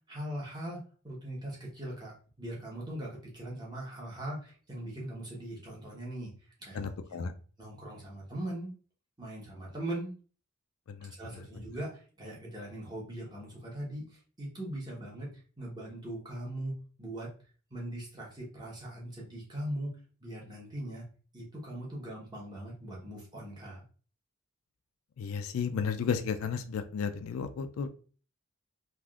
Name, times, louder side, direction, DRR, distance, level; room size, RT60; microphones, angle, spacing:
voice 1, 0.1-6.3 6.6-6.9 7.6-8.8 9.2-10.2 11.1-17.3 17.7-21.1 21.3-23.8, right 1 dB, 20° right, -4 dB, 1.0 m, -40 dB
voice 2, 6.7-7.3 10.9-11.4 25.2-27.9, left 6 dB, 80° left, 9 dB, 0.4 m, -33 dB
3.5 x 2.5 x 2.3 m, 0.39 s
head